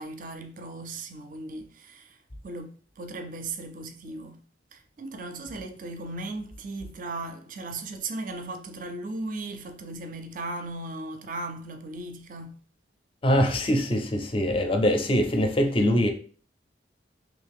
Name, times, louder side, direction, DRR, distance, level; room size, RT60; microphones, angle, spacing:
voice 1, 0.0-2.2 2.4-4.4 4.7-12.5, right 2 dB, 45° right, 0.4 m, -37 dB
voice 2, 13.2-16.1, equal, 30° left, 0.5 m, -23 dB
3.1 x 2.5 x 3.4 m
head